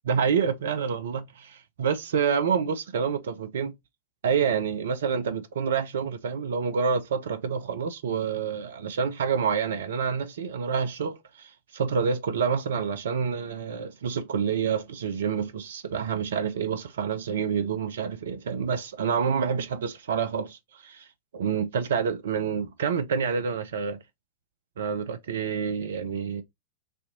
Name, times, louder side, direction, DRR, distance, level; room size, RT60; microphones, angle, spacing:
voice 1, 0.0-3.7 4.2-21.1 21.3-24.0 24.8-26.4, right 6 dB, 60° right, 0.4 m, -28 dB
4.3 x 2.7 x 2.5 m
figure-of-eight pair, 90°, 0 cm